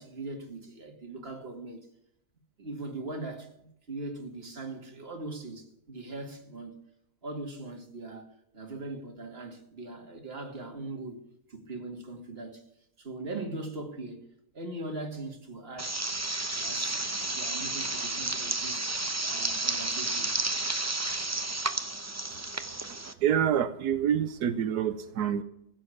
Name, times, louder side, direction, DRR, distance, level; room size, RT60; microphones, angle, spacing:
voice 1, 0.0-1.9 2.6-6.8 7.2-12.7 13.0-14.3 14.5-16.0 16.6-18.9 19.2-20.3, right 2 dB, 40° right, 2.4 m, -40 dB
sound 1, 15.8-23.1, right 2 dB, 20° right, 0.5 m, -31 dB
voice 2, 23.2-25.4, right 9 dB, 85° right, 1.3 m, -27 dB
15.5 x 7.6 x 8.4 m
omnidirectional pair, 1.7 m